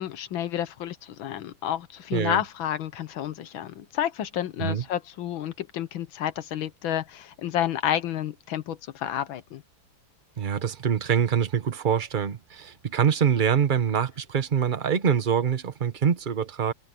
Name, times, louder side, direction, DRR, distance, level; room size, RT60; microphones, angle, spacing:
voice 1, 0.0-9.6, left 11 dB, 85° left, 1.8 m, -30 dB
voice 2, 10.4-16.7, right 7 dB, 35° right, 0.8 m, -24 dB
omnidirectional pair, 2.1 m